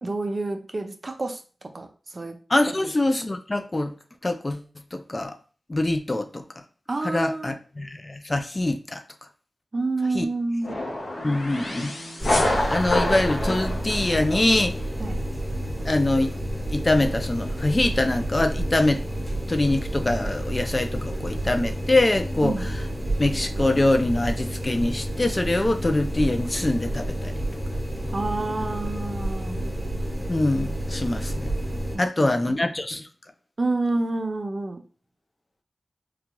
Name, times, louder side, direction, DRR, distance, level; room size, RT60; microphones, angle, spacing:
voice 1, 0.0-1.4 1.7-1.9 2.1-2.3 6.9-7.6 9.7-10.8 15.0-15.2 22.4-22.7 28.1-29.6 31.9-32.5 33.6-34.8, right 2 dB, 50° right, 0.5 m, -28 dB
voice 2, 2.5-3.9 4.2-4.6 4.9-5.4 5.7-6.4 7.0-9.0 10.1-10.3 11.2-11.9 12.4-14.7 15.8-16.3 16.7-19.0 19.5-22.8 23.2-27.3 30.3-31.5 32.0-33.1, left 2 dB, 35° left, 0.4 m, -24 dB
sound 1, 10.6-14.7, left 1 dB, 70° left, 0.8 m, -27 dB
sound 2, 12.2-32.0, right 1 dB, 5° right, 1.4 m, -30 dB
3.8 x 2.3 x 2.9 m
cardioid pair, 45°, 0 cm